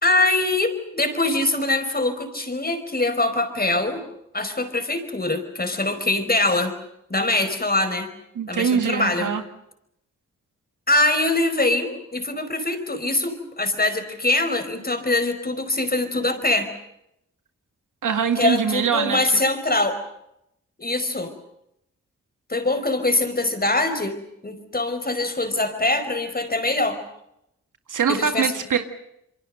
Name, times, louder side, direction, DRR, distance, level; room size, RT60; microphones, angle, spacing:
voice 1, 0.0-4.0 4.3-6.7 7.1-8.1 8.5-9.3 10.9-16.7 18.3-20.0 20.8-21.3 22.5-27.0 28.1-28.5, left 2 dB, 30° left, 9 dB, 5.0 m, -23 dB
voice 2, 8.4-9.4 18.0-19.2 27.9-28.8, right 6 dB, 75° right, 7 dB, 2.0 m, -23 dB
27.5 x 23.5 x 6.6 m, 0.80 s
cardioid pair, 45°, 31 cm